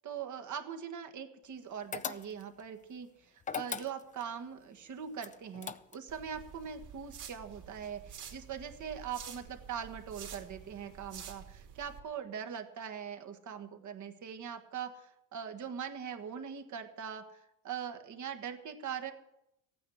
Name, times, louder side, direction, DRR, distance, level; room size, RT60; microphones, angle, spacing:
voice 1, 0.0-19.1, right 7 dB, 40° right, 7 dB, 1.6 m, -42 dB
sound 1, 1.9-2.6 3.4-4.3 5.2-6.2, left 6 dB, 20° left, 0.4 m, -39 dB
sound 2, 6.1-12.0, right 8 dB, 60° right, 3.3 m, -49 dB
14.0 x 9.3 x 6.4 m, 0.83 s
cardioid pair, 110°, 44 cm